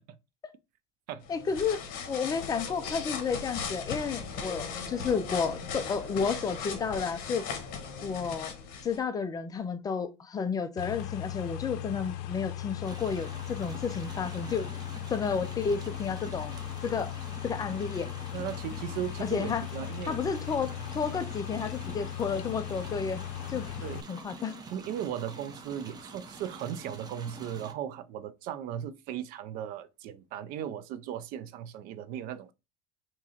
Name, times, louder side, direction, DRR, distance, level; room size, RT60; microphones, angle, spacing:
sound 1, 1.2-9.0, left 6 dB, 55° left, 1.2 m, -38 dB
voice 1, 1.3-1.8 2.1-7.4 8.0-8.6 8.8-14.7 15.1-16.5 16.8-17.1 17.4-18.1 19.2-19.6 20.1-23.2 23.5-23.7 24.1-24.6, left 6 dB, 20° left, 0.4 m, -31 dB
sound 2, 10.8-24.0, left 12 dB, 75° left, 0.6 m, -38 dB
sound 3, 12.8-27.7, right 3 dB, 25° right, 0.7 m, -46 dB
voice 2, 18.3-20.2 23.8-24.1 24.7-32.5, right 10 dB, 55° right, 0.5 m, -37 dB
3.6 x 3.0 x 4.2 m
cardioid pair, 150°, 17 cm